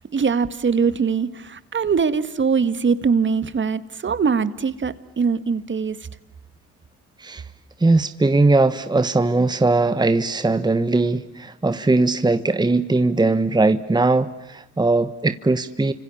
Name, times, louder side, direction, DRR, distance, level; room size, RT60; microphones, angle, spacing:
voice 1, 0.1-6.0, right 5 dB, 40° right, 1.7 m, -22 dB
voice 2, 7.8-15.9, right 3 dB, 15° right, 1.3 m, -19 dB
29.5 x 26.0 x 7.2 m
cardioid pair, 90°, 30 cm